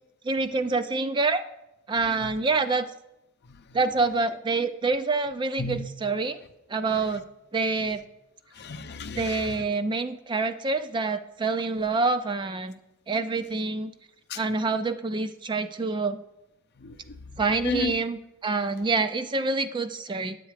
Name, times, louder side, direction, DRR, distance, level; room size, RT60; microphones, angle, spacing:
voice 1, 0.2-1.4 1.9-2.9 3.7-6.4 6.7-7.2 7.5-8.0 9.2-12.8 13.1-13.9 14.4-16.2 17.4-20.4, right 3 dB, 20° right, 10 dB, 0.4 m, -26 dB
voice 2, 8.5-9.7 14.3-14.4 16.8-17.9, left 4 dB, 50° left, 9 dB, 0.6 m, -34 dB
9.1 x 8.1 x 4.9 m, 0.88 s
head